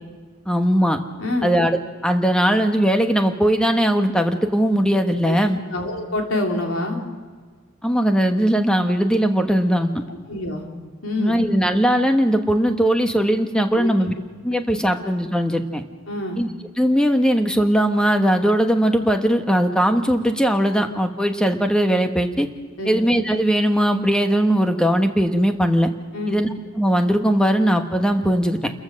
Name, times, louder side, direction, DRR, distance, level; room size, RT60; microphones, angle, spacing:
voice 1, 0.5-1.0 1.4-5.6 7.8-9.9 11.2-14.1 14.4-15.8 16.4-16.5 16.8-22.5 22.8-25.9 26.3-26.5 26.8-28.7, equal, 5° left, 5 dB, 1.2 m, -19 dB
voice 2, 5.7-7.0 10.1-10.7 11.0-11.4 13.7-13.9 16.1-16.4 22.8-23.0 26.1-26.4, left 1 dB, 80° left, 1 dB, 3.4 m, -26 dB
28.5 x 14.5 x 6.4 m, 1.5 s
head